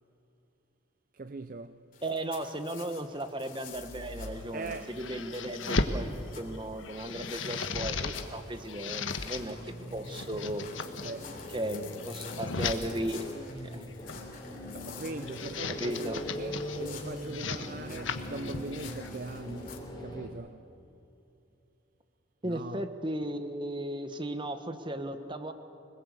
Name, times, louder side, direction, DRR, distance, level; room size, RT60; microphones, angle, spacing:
voice 1, 1.1-1.9 4.5-5.2 11.0-11.5 14.7-20.6 22.4-22.9, right 3 dB, 45° right, 0.5 m, -41 dB
sound 1, 1.9-19.8, left 6 dB, 45° left, 3.3 m, -50 dB
voice 2, 2.0-6.1 6.4-10.6 11.5-13.2 13.6-13.8 15.8-16.2 22.4-25.5, right 1 dB, 25° right, 1.3 m, -36 dB
sound 2, 3.8-6.0 6.5-8.3 8.6-9.4 10.0-11.1 11.8-12.8 13.9-14.3 15.1-16.8 17.2-19.1, left 4 dB, 80° left, 1.4 m, -36 dB
sound 3, 9.3-20.3, left 1 dB, 20° left, 3.8 m, -41 dB
25.5 x 20.5 x 8.3 m
head